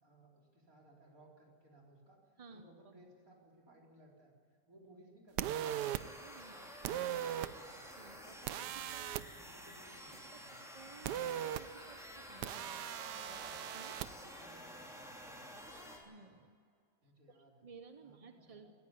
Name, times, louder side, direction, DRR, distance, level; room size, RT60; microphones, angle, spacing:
voice 1, 0.0-4.3 4.7-5.6 6.5-7.8 9.0-10.6 13.0-13.6 14.0-15.6 17.0-17.7 18.0-18.7, right 1 dB, 55° right, -2 dB, 4.7 m, -62 dB
sound 1, 5.4-6.0 6.8-7.5 8.5-9.2 11.1-11.6 12.4-14.1, right 11 dB, 90° right, 1.3 m, -38 dB
sound 2, 5.6-16.0, equal, ahead, 3.4 m, -51 dB
voice 2, 5.9-6.5 8.0-9.1 10.3-12.8 13.7-13.9 15.3-15.4 16.0-16.6 17.3-18.7, right 4 dB, 35° right, 8 dB, 0.6 m, -57 dB
18.0 x 15.0 x 9.9 m, 2.2 s
omnidirectional pair, 1.8 m